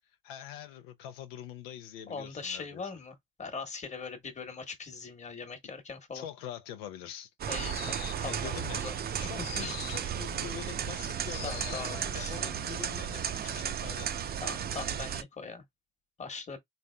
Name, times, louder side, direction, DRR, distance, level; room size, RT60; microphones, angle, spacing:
voice 1, 0.2-2.8 6.1-7.3 8.2-8.8 9.2-14.4, left 10 dB, 75° left, 0.8 m, -44 dB
voice 2, 2.1-6.3 7.5-8.9 9.6-10.1 11.4-12.4 14.4-15.6 16.2-16.6, left 5 dB, 20° left, 1.3 m, -41 dB
sound 1, 7.4-15.2, right 8 dB, 30° right, 0.6 m, -34 dB
sound 2, 7.6-8.4 9.4-10.2 11.3-12.0, left 9 dB, 55° left, 1.0 m, -43 dB
4.0 x 3.3 x 2.2 m
hypercardioid pair, 85°, 31 cm